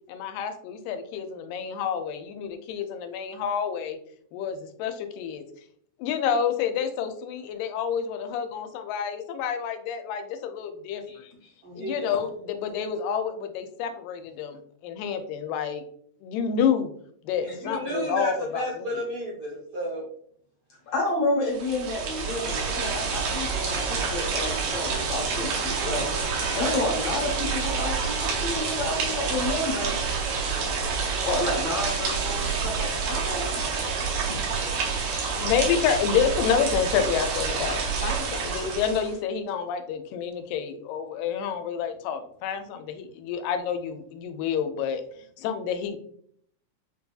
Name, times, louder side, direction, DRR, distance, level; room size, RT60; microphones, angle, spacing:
voice 1, 0.1-4.0 4.3-5.4 6.0-11.3 11.8-15.8 16.2-16.9 17.2-19.0 35.3-45.0 45.4-46.0, left 7 dB, 90° left, 7 dB, 2.2 m, -29 dB
voice 2, 11.1-11.5 20.9-30.0 31.2-33.5 34.3-34.4 35.1-35.4, left 2 dB, 60° left, -3 dB, 1.7 m, -30 dB
voice 3, 11.6-12.1 17.4-20.1, equal, 75° right, -4 dB, 1.3 m, -32 dB
sound 1, 21.5-39.1, right 5 dB, 90° right, 2.5 m, -28 dB
6.3 x 2.7 x 2.2 m, 0.63 s
omnidirectional pair, 3.8 m